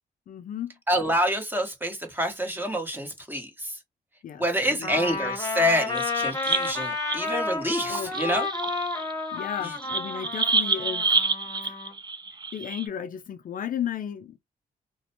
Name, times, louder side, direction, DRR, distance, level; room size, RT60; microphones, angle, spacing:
voice 1, 0.3-0.7 4.2-5.0 7.9-8.1 9.3-11.1 11.6-11.8 12.5-14.4, left 9 dB, 60° left, 0.4 m, -34 dB
voice 2, 0.9-3.8 4.4-8.5 9.6-9.7, equal, 10° right, 1.2 m, -27 dB
Trumpet, 4.8-11.9, left 3 dB, 20° left, 1.2 m, -31 dB
sound 1, 5.9-7.4 7.8-12.9, right 4 dB, 25° right, 0.5 m, -29 dB
2.5 x 2.2 x 2.8 m
cardioid pair, 60°, 16 cm